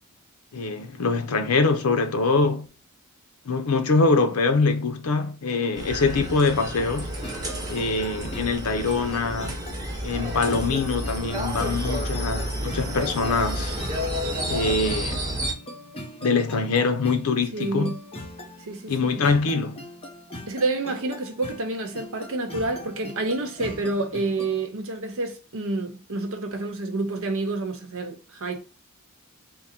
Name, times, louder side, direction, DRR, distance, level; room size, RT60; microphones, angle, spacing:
voice 1, 0.5-2.7 3.5-7.1 7.7-9.5 10.0-13.8 14.5-15.2 16.2-18.0 18.9-19.8, left 4 dB, 75° left, 0.6 m, -24 dB
sound 1, 5.7-15.5, equal, 20° right, 1.0 m, -30 dB
sound 2, 7.2-24.7, left 1 dB, 25° left, 0.9 m, -41 dB
voice 2, 17.5-18.0 18.6-19.2 20.5-28.6, right 2 dB, 65° right, 0.8 m, -29 dB
3.8 x 2.1 x 4.3 m
head